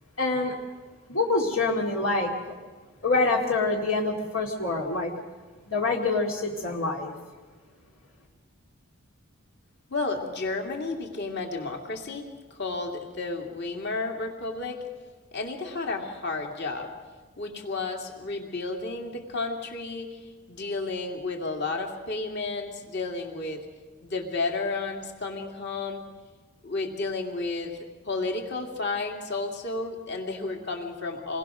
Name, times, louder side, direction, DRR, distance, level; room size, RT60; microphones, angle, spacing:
voice 1, 0.2-0.5 1.1-2.6 3.0-5.1 5.7-7.1, left 3 dB, 65° left, -1 dB, 2.4 m, -26 dB
voice 2, 9.9-14.8 15.3-17.0 17.4-23.7 24.0-26.0 26.6-31.4, left 3 dB, 50° left, 2 dB, 2.8 m, -32 dB
27.5 x 21.0 x 6.5 m, 1.4 s
head